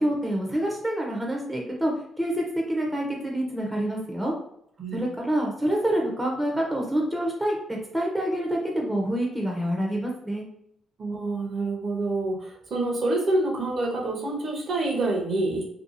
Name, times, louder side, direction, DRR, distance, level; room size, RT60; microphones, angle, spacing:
voice 1, 0.0-4.3 4.9-10.4, right 1 dB, 10° right, -1 dB, 0.6 m, -27 dB
voice 2, 11.0-15.7, right 2 dB, 50° right, 0 dB, 0.7 m, -27 dB
2.7 x 2.3 x 2.5 m, 0.71 s
cardioid pair, 90°, 0 cm